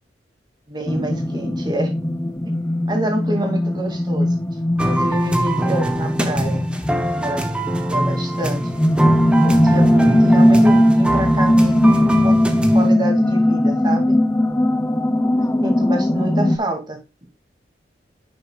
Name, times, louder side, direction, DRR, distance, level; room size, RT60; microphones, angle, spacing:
voice 1, 0.7-1.9 2.9-4.4 4.8-6.6 7.2-7.5 7.8-8.7 9.4-14.2 15.4-17.3, right 1 dB, 25° right, 3 dB, 2.4 m, -27 dB
sound 1, 0.9-16.6, left 1 dB, 15° left, 0.5 m, -18 dB
sound 2, 4.8-12.9, right 1 dB, 5° right, 1.0 m, -24 dB
10.5 x 6.5 x 2.4 m, 0.26 s
head